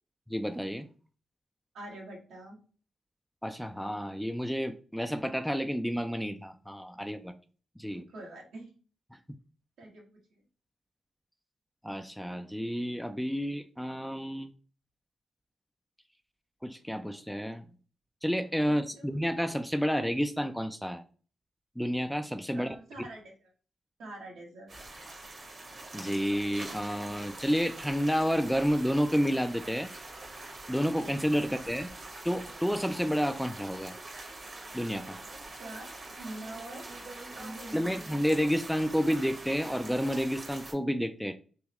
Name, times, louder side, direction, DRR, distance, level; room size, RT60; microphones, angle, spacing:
voice 1, 0.3-0.9 3.4-7.3 7.8-8.0 9.1-9.2 11.8-14.5 16.6-17.6 18.2-21.0 21.8-22.7 25.9-29.9 30.7-31.9 32.2-33.9 34.7-35.2 37.7-41.4, equal, ahead, 8 dB, 0.4 m, -30 dB
voice 2, 1.7-2.6 7.9-8.7 9.8-10.4 19.0-19.2 22.5-23.3 24.0-24.7 31.4-31.7 35.6-35.9 36.2-36.9 37.3-38.1, right 1 dB, 85° right, -1 dB, 1.2 m, -45 dB
sound 1, 24.7-40.7, right 2 dB, 60° right, 1.2 m, -44 dB
3.6 x 3.0 x 2.9 m, 0.40 s
cardioid pair, 60°, 0 cm